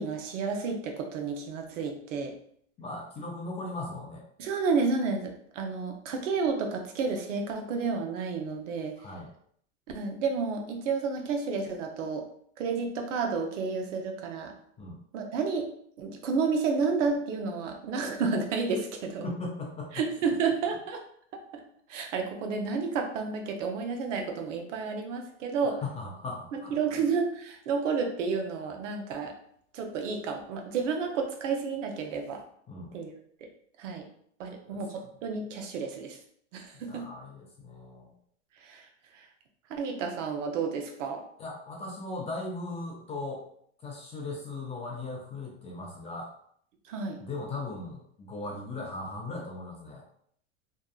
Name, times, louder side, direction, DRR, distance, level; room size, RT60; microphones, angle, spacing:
voice 1, 0.0-2.3 4.4-9.0 9.9-12.2 12.6-14.5 15.1-15.7 16.0-19.2 19.9-21.0 21.5-21.6 21.9-25.8 26.5-29.3 29.7-32.4 32.9-33.1 33.8-34.0 34.4-36.2 36.5-37.0 38.6-38.9 39.1-39.3 39.7-41.2 46.9-47.2, right 5 dB, 75° right, 4 dB, 0.6 m, -31 dB
voice 2, 2.8-4.2 9.0-9.3 14.8-15.0 19.2-20.1 25.6-27.0 32.7-32.9 34.7-35.1 36.7-38.1 41.4-43.4 43.8-46.3 47.2-50.1, left 2 dB, 20° left, -1 dB, 0.3 m, -38 dB
2.7 x 2.2 x 2.3 m, 0.64 s
hypercardioid pair, 110°, 38 cm